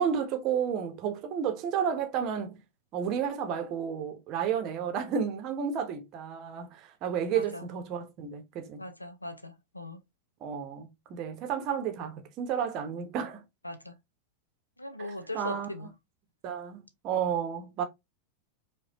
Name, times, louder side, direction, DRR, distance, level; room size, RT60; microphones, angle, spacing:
voice 1, 0.0-2.6 2.9-8.8 10.4-13.4 15.0-15.7 16.4-17.8, right 8 dB, 40° right, 0.8 m, -32 dB
voice 2, 7.3-7.7 8.8-10.0 13.6-14.0 14.8-15.9, left 1 dB, 85° left, 0.5 m, -40 dB
4.8 x 2.2 x 2.6 m
figure-of-eight pair, 90°, 0 cm